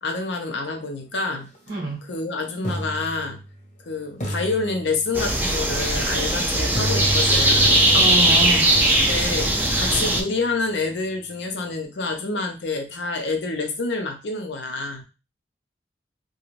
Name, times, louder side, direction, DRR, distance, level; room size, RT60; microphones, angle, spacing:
voice 1, 0.0-1.5 2.0-3.4 3.9-7.8 9.1-15.0, left 3 dB, 85° left, 0.6 m, -28 dB
sound 1, 1.5-1.7 2.6-3.8 4.2-5.4 6.7-10.7, equal, 40° left, 0.7 m, -32 dB
voice 2, 1.7-2.0 7.9-8.7, right 1 dB, 55° right, 0.7 m, -26 dB
sound 2, 5.1-10.2, right 1 dB, 10° right, 0.3 m, -19 dB
2.5 x 2.2 x 3.0 m
head